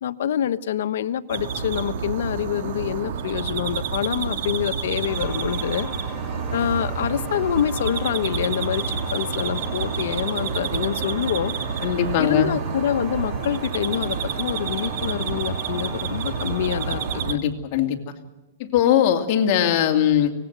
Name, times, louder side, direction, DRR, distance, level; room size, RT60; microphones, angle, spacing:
voice 1, 0.0-5.9 6.5-11.5 12.2-17.4, left 10 dB, 70° left, 11 dB, 1.1 m, -26 dB
sound 1, 1.3-17.4, right 6 dB, 55° right, 2.6 m, -29 dB
sound 2, 5.0-17.2, left 1 dB, 10° right, 2.9 m, -40 dB
voice 2, 11.8-12.6 17.3-18.1 18.6-20.3, left 10 dB, 40° left, 4 dB, 2.5 m, -20 dB
24.5 x 19.0 x 8.1 m, 1.0 s
supercardioid pair, 160°, 0 cm